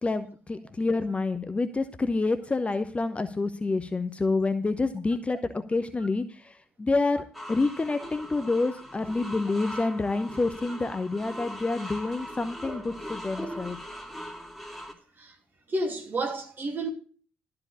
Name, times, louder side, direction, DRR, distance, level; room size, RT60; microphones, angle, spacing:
voice 1, 0.0-6.2 6.8-7.2 7.5-13.8, left 3 dB, 20° left, 0.9 m, -28 dB
sound 1, 7.3-14.9, equal, ahead, 2.5 m, -40 dB
voice 2, 15.7-16.9, right 2 dB, 35° right, 2.4 m, -30 dB
13.0 x 4.9 x 8.4 m
figure-of-eight pair, 45°, 6 cm